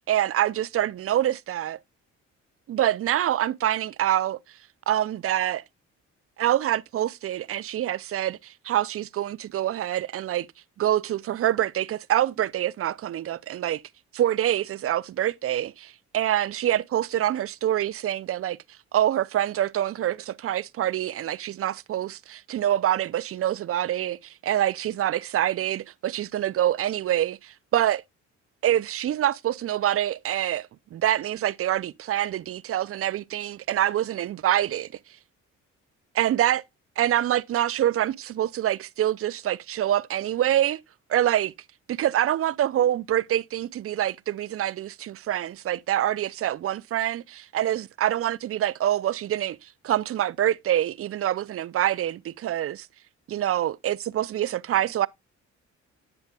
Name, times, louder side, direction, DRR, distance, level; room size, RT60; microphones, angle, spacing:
voice 1, 0.0-1.8 2.7-4.4 4.9-5.6 6.4-10.5 10.8-13.8 14.1-18.6 18.9-28.0 28.6-34.9 36.1-36.6 37.0-40.8 41.1-41.5 41.9-52.9 53.3-55.1, right 12 dB, 50° right, 0.5 m, -26 dB
9.1 x 7.1 x 2.2 m
cardioid pair, 90°, 30 cm